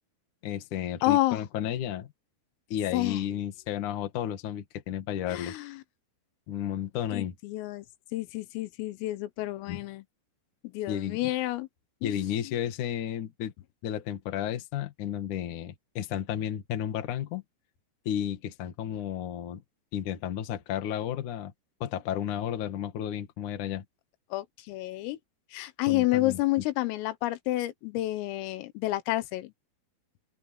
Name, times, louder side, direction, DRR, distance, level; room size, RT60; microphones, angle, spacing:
voice 1, 0.4-2.1 2.7-5.6 6.5-7.3 9.7-9.8 10.9-11.2 12.0-13.5 13.8-17.4 18.1-19.6 19.9-21.5 21.8-23.8 25.9-26.4, left 10 dB, 55° left, 2.5 m, -32 dB
voice 2, 1.0-1.5 2.9-3.2 5.3-5.8 7.1-7.9 8.1-10.0 10.7-11.7 12.0-12.4 24.3-25.2 25.5-29.5, left 17 dB, 85° left, 3.8 m, -29 dB
open air
omnidirectional pair, 5.8 m